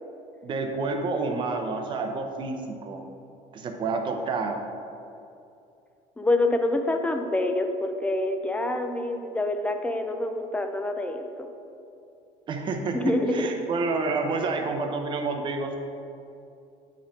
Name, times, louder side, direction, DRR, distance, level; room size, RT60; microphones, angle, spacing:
voice 1, 0.4-2.6 2.8-3.0 3.5-4.6 12.5-13.0 13.3-15.8, right 3 dB, 30° right, 4 dB, 0.6 m, -29 dB
voice 2, 6.2-11.5 12.9-13.5, left 2 dB, 10° left, 6 dB, 0.3 m, -26 dB
8.3 x 4.3 x 3.8 m, 2.7 s
cardioid pair, 160°, 16 cm